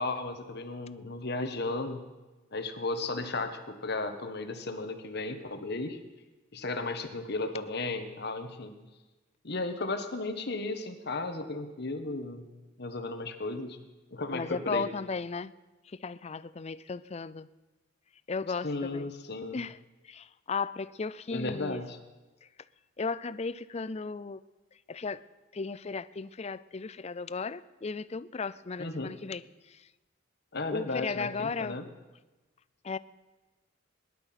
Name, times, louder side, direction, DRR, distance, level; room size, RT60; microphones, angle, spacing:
voice 1, 0.0-2.0 2.5-6.0 6.5-8.7 9.4-12.5 12.8-13.8 14.1-14.9 18.6-19.6 21.3-22.0 28.8-29.1 30.5-31.8, left 2 dB, 55° left, 7 dB, 1.4 m, -34 dB
voice 2, 14.3-15.5 15.9-17.5 18.3-19.1 19.5-19.8 20.0-21.8 23.0-24.4 24.9-25.2 25.5-29.9 30.7-31.8 32.8-33.0, left 4 dB, 35° left, 17 dB, 0.4 m, -35 dB
19.0 x 11.5 x 6.0 m, 1.1 s
head